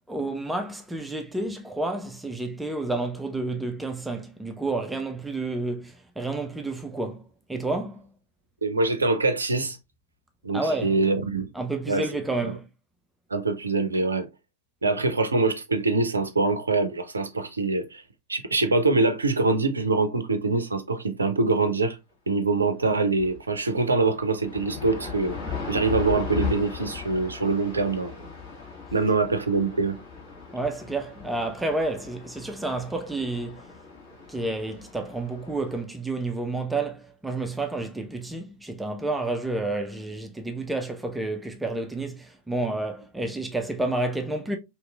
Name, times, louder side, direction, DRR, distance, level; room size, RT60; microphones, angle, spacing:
voice 1, 0.1-8.1 10.5-10.9 11.5-12.6 30.5-33.6 34.3-44.6, right 2 dB, 5° right, 0.4 m, -30 dB
voice 2, 8.6-9.8 10.4-11.5 11.9-12.1 12.4-12.5 13.3-14.3 14.8-18.0 18.3-22.0 22.3-28.2 28.9-30.0, right 3 dB, 75° right, 0.4 m, -24 dB
sound 1, 22.8-22.9 23.2-35.8, left 6 dB, 45° left, 1.7 m, -37 dB
2.9 x 2.9 x 2.2 m
figure-of-eight pair, 90°, 0 cm